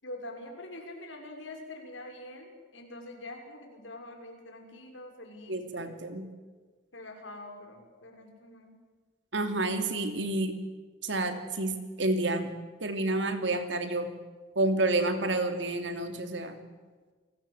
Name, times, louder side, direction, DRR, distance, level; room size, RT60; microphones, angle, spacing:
voice 1, 0.0-5.8 6.9-8.7, left 1 dB, 75° left, 3 dB, 6.0 m, -45 dB
voice 2, 5.5-6.2 9.3-10.6 11.0-12.5 12.8-14.1 14.5-16.6, right 2 dB, 65° right, 7 dB, 3.0 m, -29 dB
29.0 x 20.0 x 8.2 m, 1.4 s
head